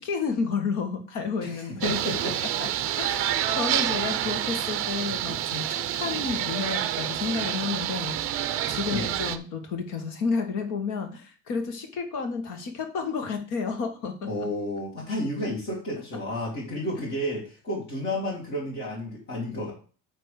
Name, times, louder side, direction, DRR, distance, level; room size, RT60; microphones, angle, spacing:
voice 1, 0.0-2.0 2.6-2.7 3.0-8.4 8.7-14.3, left 5 dB, 55° left, 6 dB, 1.8 m, -31 dB
voice 2, 1.4-2.3 4.2-4.3 8.9-9.1 14.2-19.7, left 1 dB, 30° left, -5 dB, 2.5 m, -31 dB
sound 1, 1.8-9.4, right 12 dB, 40° right, 0.6 m, -28 dB
9.3 x 3.4 x 6.7 m, 0.39 s
cardioid pair, 175°, 36 cm